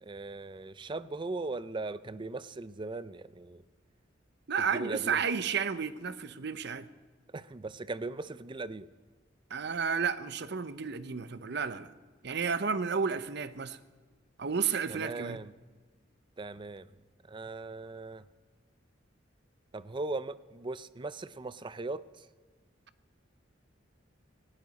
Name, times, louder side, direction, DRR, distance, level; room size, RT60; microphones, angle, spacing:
voice 1, 0.0-3.6 4.7-5.2 7.3-8.9 14.9-15.5 16.4-16.9 17.3-18.2 19.7-22.0, right 3 dB, 25° right, 15 dB, 0.5 m, -38 dB
voice 2, 4.5-6.9 9.5-11.9 12.2-13.8 14.4-15.4, right 6 dB, 60° right, 14 dB, 0.8 m, -32 dB
19.0 x 17.0 x 4.2 m, 1.4 s
head